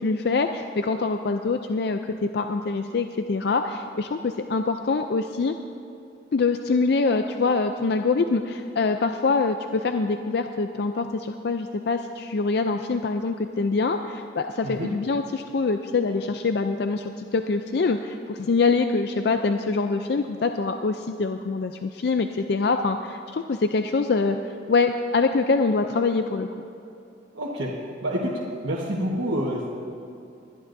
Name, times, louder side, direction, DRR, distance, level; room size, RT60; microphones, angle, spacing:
voice 1, 0.0-5.5 6.3-24.4 24.7-26.7, left 4 dB, 55° left, 7 dB, 0.4 m, -24 dB
voice 2, 27.3-27.7 28.0-28.3 28.6-29.7, equal, 90° right, -5 dB, 1.4 m, -27 dB
22.0 x 11.5 x 2.6 m, 2.6 s
head